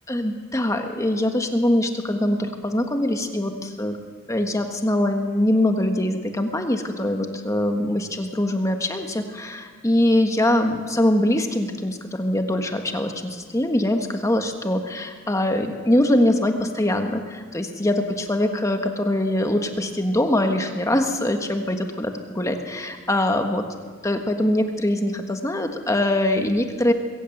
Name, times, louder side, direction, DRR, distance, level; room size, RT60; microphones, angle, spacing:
voice 1, 0.1-4.0 4.3-23.6 24.0-26.9, left 1 dB, 15° left, 5 dB, 1.5 m, -23 dB
22.0 x 16.5 x 7.9 m, 1.6 s
head